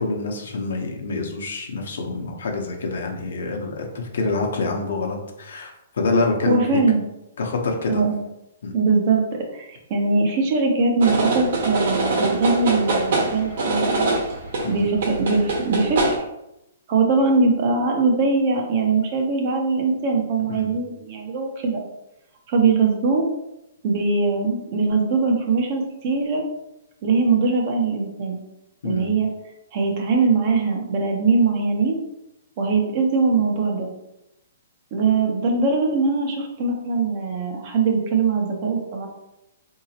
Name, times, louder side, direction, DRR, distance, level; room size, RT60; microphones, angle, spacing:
voice 1, 0.0-6.8 7.4-8.0 8.6-8.7 14.6-14.8 20.5-20.7 28.8-29.1, left 3 dB, 75° left, 2 dB, 0.8 m, -26 dB
voice 2, 6.5-7.0 7.9-8.2 8.7-9.2 9.5-14.1 14.7-16.2 16.9-21.8 22.5-23.3 23.8-26.4 27.0-28.4 28.8-29.3 29.7-32.0 32.6-33.9 34.9-39.1, right 4 dB, 40° right, 1 dB, 0.8 m, -21 dB
sound 1, 11.0-16.2, right 2 dB, 60° right, 1.1 m, -24 dB
3.9 x 2.8 x 2.8 m, 0.88 s
hypercardioid pair, 155°, 0 cm